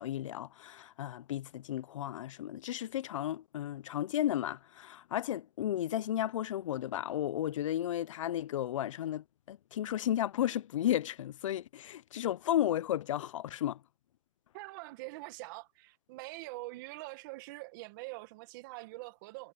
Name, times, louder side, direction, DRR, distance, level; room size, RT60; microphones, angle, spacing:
voice 1, 0.0-13.8, left 12 dB, 85° left, 0.5 m, -34 dB
voice 2, 14.5-19.5, right 22 dB, 40° right, 1.3 m, -44 dB
hypercardioid pair, 155°, 16 cm